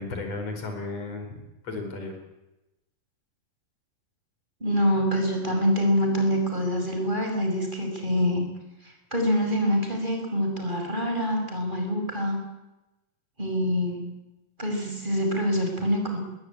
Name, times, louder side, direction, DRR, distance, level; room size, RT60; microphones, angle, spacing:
voice 1, 0.0-2.2, left 3 dB, 45° left, 6 dB, 5.4 m, -34 dB
voice 2, 4.6-8.5 9.1-12.4 13.4-14.0 14.6-16.2, equal, 15° right, 2 dB, 5.7 m, -25 dB
22.0 x 17.0 x 9.7 m, 0.98 s
omnidirectional pair, 4.0 m